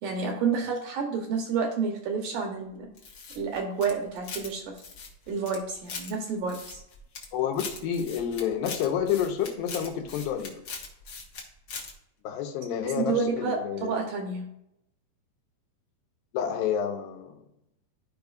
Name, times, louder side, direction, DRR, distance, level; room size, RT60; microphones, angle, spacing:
voice 1, 0.0-2.9 3.4-4.8 5.3-6.8 12.8-14.5, right 5 dB, 75° right, 3 dB, 2.1 m, -29 dB
sound 1, 3.0-4.5 4.8-6.1 6.5-7.3 7.5-11.4 11.7-11.9, left 5 dB, 65° left, 1.3 m, -40 dB
voice 2, 7.3-10.6 12.2-14.0 16.3-17.3, left 8 dB, 80° left, 5 dB, 2.6 m, -29 dB
13.5 x 5.2 x 2.4 m, 0.80 s
omnidirectional pair, 4.2 m